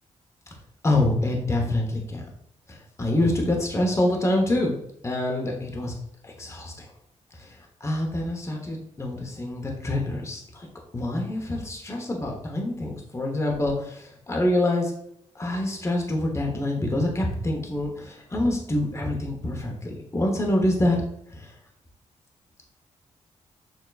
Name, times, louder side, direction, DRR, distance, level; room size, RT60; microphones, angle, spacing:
voice 1, 0.8-2.2 2.7-4.8 5.0-5.9 6.2-6.9 7.4-10.7 10.9-14.9 15.3-21.0 21.3-21.5, left 1 dB, 20° left, 0 dB, 1.0 m, -26 dB
6.7 x 2.9 x 2.4 m, 0.73 s
cardioid pair, 80°, 13 cm